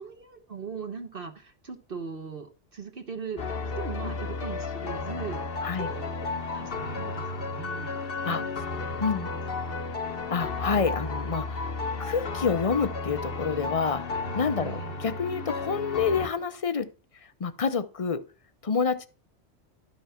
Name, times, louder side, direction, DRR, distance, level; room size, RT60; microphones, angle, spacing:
voice 1, 0.0-3.4 3.8-6.1 6.4-8.0 8.3-8.5 9.1-9.8 14.6-15.0, right 6 dB, 50° right, 5 dB, 1.3 m, -40 dB
sound 1, 3.4-16.3, left 3 dB, 55° left, 1.2 m, -33 dB
voice 2, 10.3-11.7 12.0-14.0 14.4-16.9 17.4-18.2 18.6-19.1, left 5 dB, 35° left, 13 dB, 0.6 m, -28 dB
12.0 x 5.9 x 5.7 m, 0.34 s
omnidirectional pair, 1.2 m